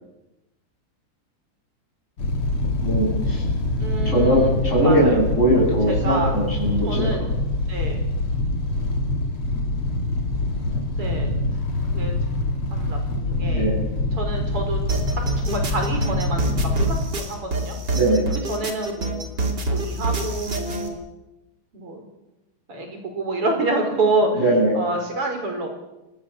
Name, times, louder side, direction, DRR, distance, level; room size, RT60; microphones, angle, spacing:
sound 1, 2.2-17.1, left 2 dB, 75° left, 3.8 m, -25 dB
voice 1, 2.8-3.4 4.0-7.1 13.5-13.8 17.9-18.3 24.4-24.8, right 1 dB, 30° left, -3 dB, 7.9 m, -20 dB
voice 2, 3.8-4.5 4.8-5.2 5.9-6.4 6.9-7.3 7.7-8.0 11.0-11.3 11.9-12.1 12.7-13.7 14.1-14.8 15.4-17.8 18.5-19.3 19.7-21.0 21.7-22.0 22.7-24.4 24.7-25.7, right 2 dB, 90° right, 4 dB, 6.0 m, -27 dB
sound 2, 14.9-20.9, right 2 dB, 50° right, 3.6 m, -26 dB
30.0 x 18.0 x 7.4 m, 1.0 s
omnidirectional pair, 2.4 m